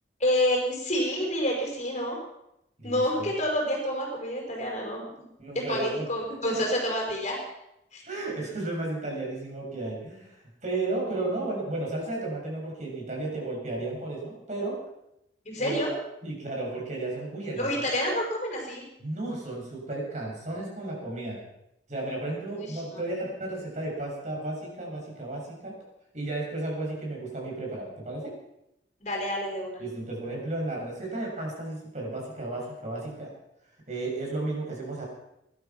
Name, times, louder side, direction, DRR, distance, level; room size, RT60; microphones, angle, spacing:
voice 1, 0.2-2.2 2.8-5.0 5.5-7.4 7.9-8.0 15.4-15.9 17.6-18.8 22.6-23.0 29.0-29.8, left 1 dB, 40° left, 0 dB, 5.1 m, -28 dB
voice 2, 2.8-3.3 5.4-6.0 6.4-6.6 8.0-14.8 15.6-16.0 16.2-17.7 19.0-21.4 21.9-25.7 26.1-28.3 29.8-33.3 33.9-35.1, right 2 dB, 40° right, -1 dB, 6.8 m, -33 dB
20.0 x 12.0 x 6.0 m, 0.82 s
head